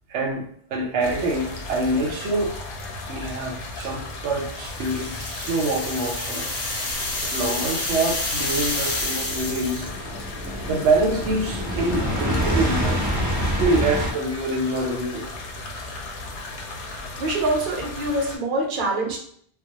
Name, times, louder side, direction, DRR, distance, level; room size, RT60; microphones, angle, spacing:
voice 1, 0.1-2.5 3.1-6.5 7.2-9.9 10.7-13.0 13.4-15.3, right 2 dB, 85° right, 1 dB, 0.9 m, -25 dB
sound 1, 1.0-18.4, left 2 dB, 85° left, 0.9 m, -36 dB
sound 2, 4.4-10.0, left 2 dB, 35° left, 0.6 m, -29 dB
sound 3, 7.1-14.1, equal, 25° right, 0.4 m, -27 dB
voice 2, 17.2-19.2, right 2 dB, 55° right, -1 dB, 0.8 m, -25 dB
2.4 x 2.0 x 2.7 m, 0.62 s
omnidirectional pair, 1.1 m